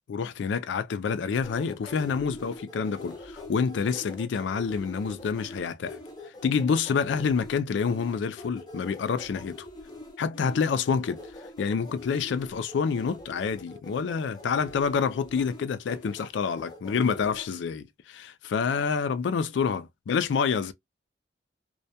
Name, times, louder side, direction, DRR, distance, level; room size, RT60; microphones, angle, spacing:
voice 1, 0.1-6.0 6.4-9.7 10.2-11.2 11.6-20.7, left 6 dB, 70° left, 0.3 m, -28 dB
crazy wabble, 1.4-17.5, left 2 dB, 20° left, 0.5 m, -44 dB
2.2 x 2.1 x 2.6 m
head